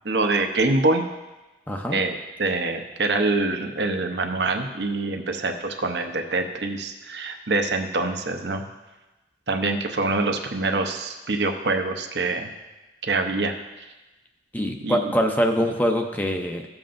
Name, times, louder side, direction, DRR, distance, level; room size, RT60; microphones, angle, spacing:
voice 1, 0.0-1.0 1.9-8.6 9.5-12.5 13.0-13.5 14.8-15.0, right 3 dB, 75° right, 4 dB, 0.8 m, -25 dB
voice 2, 1.7-2.0 14.5-16.7, equal, 10° left, 4 dB, 0.6 m, -24 dB
14.5 x 7.3 x 2.6 m, 1.1 s
head